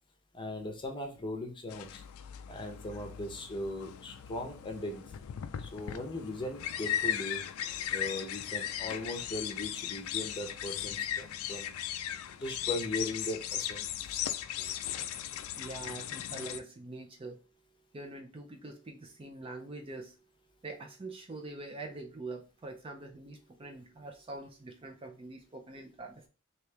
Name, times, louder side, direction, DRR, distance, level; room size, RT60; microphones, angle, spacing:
voice 1, 0.3-2.0 2.5-5.0 5.6-7.4 7.9-11.7 12.4-14.2, left 1 dB, 25° left, 3 dB, 0.7 m, -39 dB
sound 1, 1.7-16.6, left 11 dB, 90° left, 0.3 m, -37 dB
voice 2, 15.6-17.4 17.9-20.1 20.6-26.3, right 2 dB, 25° right, 3 dB, 0.4 m, -44 dB
3.1 x 2.8 x 3.3 m, 0.33 s
head